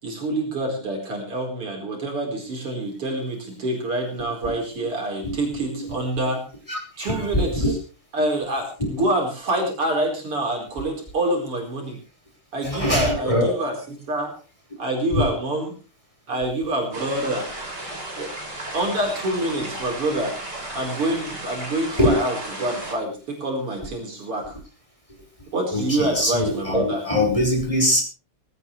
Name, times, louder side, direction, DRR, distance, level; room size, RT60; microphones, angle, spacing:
voice 1, 0.0-6.4 7.0-7.8 8.1-12.0 12.5-14.4 14.8-15.8 16.3-17.5 18.2-18.3 18.7-20.4 20.7-24.6 25.5-27.0, right 1 dB, 85° right, 0 dB, 5.6 m, -26 dB
voice 2, 6.7-7.7 12.6-13.5 15.1-15.3 22.0-22.2 25.7-28.0, left 1 dB, 15° left, 0 dB, 5.6 m, -22 dB
sound 1, 16.9-22.9, right 1 dB, 45° right, 7.2 m, -34 dB
19.5 x 18.0 x 3.4 m, 0.36 s
omnidirectional pair, 2.4 m